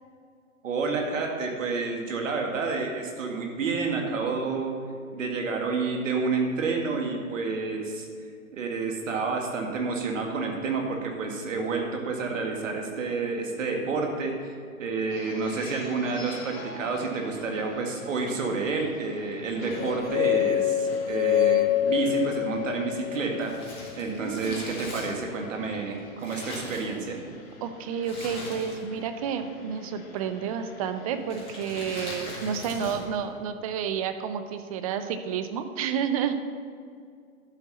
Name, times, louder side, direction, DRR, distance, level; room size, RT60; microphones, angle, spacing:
voice 1, 0.6-4.7 5.1-8.1 8.5-27.2, right 4 dB, 60° right, 2 dB, 1.9 m, -29 dB
sound 1, 15.1-32.7, left 2 dB, 45° left, 2.4 m, -46 dB
sound 2, 19.8-23.9, left 12 dB, 70° left, 0.8 m, -26 dB
Crumpling crinkling, 23.4-27.4 28.0-29.1 29.3-29.4 30.2-30.6 31.2-33.2 33.4-33.5, left 2 dB, 15° left, 2.9 m, -40 dB
voice 2, 24.0-25.0 27.6-36.3, right 7 dB, 25° right, 9 dB, 0.5 m, -30 dB
11.5 x 8.0 x 4.1 m, 2.2 s
figure-of-eight pair, 115°, 43 cm